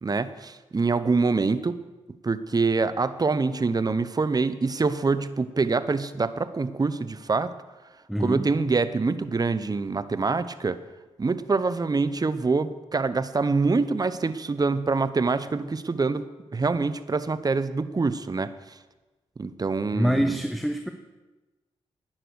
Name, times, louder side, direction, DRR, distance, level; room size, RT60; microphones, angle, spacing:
voice 1, 0.0-1.8 2.2-7.5 8.2-10.8 11.2-16.3 16.5-18.8 19.4-20.4, right 4 dB, 35° right, 14 dB, 0.8 m, -25 dB
voice 2, 8.1-8.4 19.9-20.9, equal, ahead, 6 dB, 1.0 m, -25 dB
11.5 x 9.9 x 6.4 m, 1.1 s
supercardioid pair, 50°, 12 cm